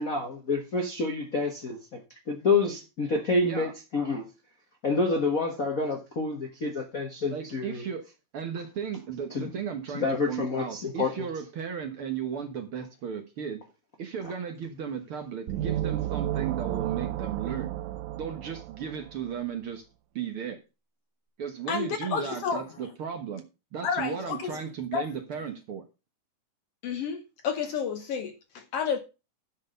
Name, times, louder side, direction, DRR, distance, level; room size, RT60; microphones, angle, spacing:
voice 1, 0.0-1.8 2.3-4.3 4.8-7.8 9.3-9.5 9.9-11.3, left 3 dB, 45° left, 1.1 m, -28 dB
voice 2, 3.4-3.7 7.3-8.1 8.3-13.6 14.0-17.7 18.2-19.9 20.2-20.6 21.4-23.4 23.7-25.8, right 7 dB, 55° right, 1.7 m, -35 dB
sound 1, 15.5-19.2, right 12 dB, 80° right, 2.2 m, -32 dB
voice 3, 21.7-22.6 23.8-24.6 24.9-25.1 26.8-29.0, left 6 dB, 65° left, 1.6 m, -31 dB
11.0 x 6.2 x 5.3 m
omnidirectional pair, 3.5 m